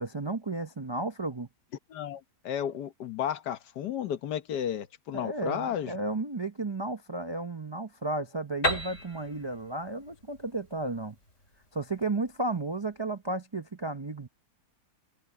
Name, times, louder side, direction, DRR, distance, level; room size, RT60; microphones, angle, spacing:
voice 1, 0.0-1.5 5.1-11.2 11.7-14.3, right 2 dB, 40° right, 0.3 m, -33 dB
voice 2, 1.9-5.9, left 9 dB, 75° left, 1.6 m, -33 dB
Piano, 8.6-12.3, left 1 dB, 45° left, 4.4 m, -34 dB
omnidirectional pair, 1.8 m